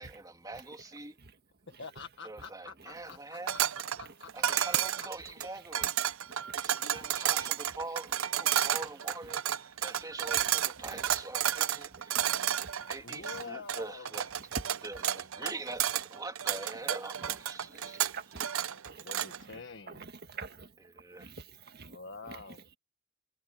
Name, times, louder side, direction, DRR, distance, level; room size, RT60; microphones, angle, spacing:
voice 1, 0.0-1.2 2.2-3.5 4.3-6.0 6.5-12.5 12.9-14.3 14.8-18.1 20.9-21.3, right 2 dB, 20° right, 2.9 m, -44 dB
voice 2, 1.8-3.2 4.0-4.8 6.8-7.0 13.0-14.1 18.9-20.0 21.9-22.8, left 4 dB, 60° left, 1.7 m, -46 dB
sound 1, 3.5-19.4, right 10 dB, 75° right, 0.7 m, -31 dB
voice 3, 6.3-6.6 6.9-7.1 7.4-7.5 8.5-8.7 10.4-10.5 10.8-11.0 11.9-12.9 14.5-14.8 17.2-17.3 17.7-18.5 18.8-19.1 19.4-19.6 19.9-20.7 21.1-22.0 22.2-22.6, right 3 dB, 50° right, 1.7 m, -47 dB
head